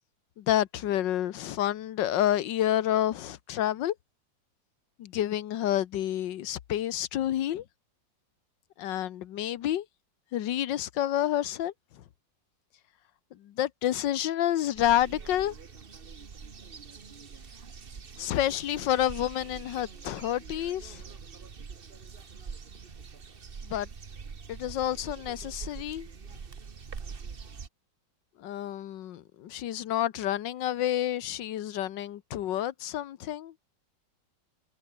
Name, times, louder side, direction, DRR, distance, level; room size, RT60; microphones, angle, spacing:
voice 1, 0.4-3.9 5.0-7.6 8.8-9.8 10.3-12.0 13.3-15.5 18.2-21.0 23.6-23.9 24.5-26.1 28.4-33.5, left 12 dB, 75° left, 1.6 m, -29 dB
sound 1, 14.7-27.7, right 5 dB, 35° right, 1.3 m, -44 dB
omnidirectional pair, 2.0 m